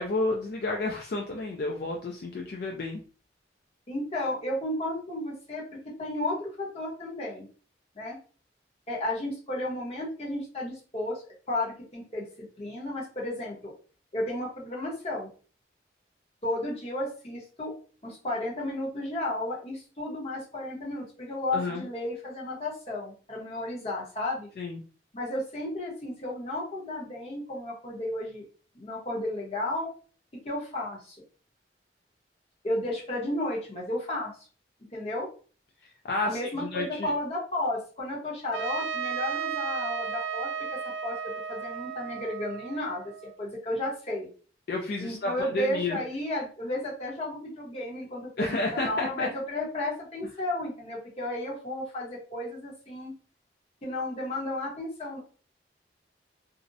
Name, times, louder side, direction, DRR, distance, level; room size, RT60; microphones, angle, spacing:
voice 1, 0.0-3.0 21.5-21.9 24.6-24.8 36.0-37.1 44.7-46.0 48.4-49.3, left 2 dB, 55° left, 1 dB, 0.3 m, -31 dB
voice 2, 3.9-7.5 7.9-8.2 8.9-11.2 11.5-12.2 12.6-13.7 14.1-15.3 16.4-17.7 18.0-24.5 25.1-28.5 28.7-29.9 30.4-31.2 32.6-34.3 34.9-35.3 36.2-40.5 41.0-44.3 45.0-48.5 48.7-53.1 53.8-55.2, left 1 dB, 35° left, -4 dB, 0.8 m, -33 dB
Trumpet, 38.5-43.4, right 7 dB, 80° right, 0.3 m, -34 dB
2.5 x 2.0 x 2.6 m, 0.39 s
head